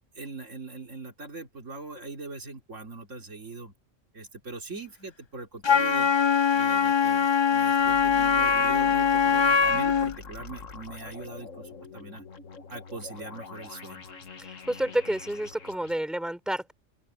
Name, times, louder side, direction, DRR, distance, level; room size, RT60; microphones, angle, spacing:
voice 1, 0.1-3.7 4.1-6.1 6.5-12.2 12.7-14.1, right 3 dB, 80° right, 3.2 m, -41 dB
Wind instrument woodwind instrument, 5.6-10.2, left 6 dB, 35° left, 0.4 m, -22 dB
sound 1, 7.7-15.9, left 5 dB, 90° left, 1.9 m, -44 dB
voice 2, 14.4-16.7, right 1 dB, ahead, 3.5 m, -30 dB
open air
omnidirectional pair, 1.3 m